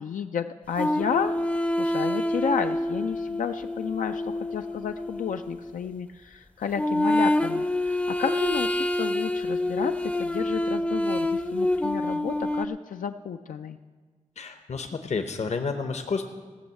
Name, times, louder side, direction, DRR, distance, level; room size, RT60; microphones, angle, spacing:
voice 1, 0.0-1.4 1.8-13.8, left 7 dB, 85° left, 7 dB, 0.4 m, -31 dB
sound 1, 0.8-5.8 6.7-12.7, left 1 dB, 10° left, 0.5 m, -27 dB
voice 2, 14.4-16.2, left 4 dB, 55° left, 7 dB, 0.8 m, -30 dB
15.0 x 6.3 x 8.1 m, 1.4 s
wide cardioid pair, 100°, 13 cm